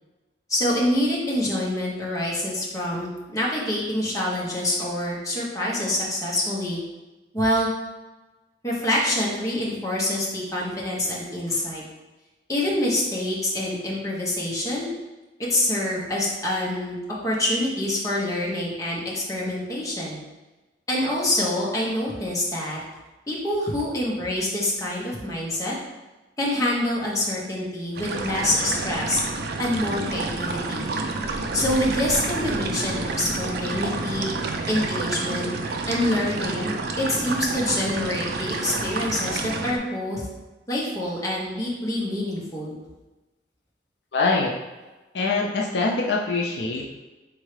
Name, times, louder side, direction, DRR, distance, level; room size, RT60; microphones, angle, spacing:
voice 1, 0.5-6.8 7.3-7.7 8.6-11.8 12.5-14.9 15.5-20.2 20.9-22.8 23.3-25.7 26.4-29.2 29.6-30.9 31.5-34.4 34.7-35.5 35.9-40.2 40.7-42.8, left 1 dB, 20° left, -5 dB, 1.1 m, -26 dB
sound 1, 27.9-39.8, right 3 dB, 65° right, 0.5 m, -29 dB
voice 2, 44.1-44.5 45.1-46.9, left 3 dB, 75° left, 0 dB, 0.5 m, -23 dB
4.5 x 3.6 x 3.2 m, 1.1 s
head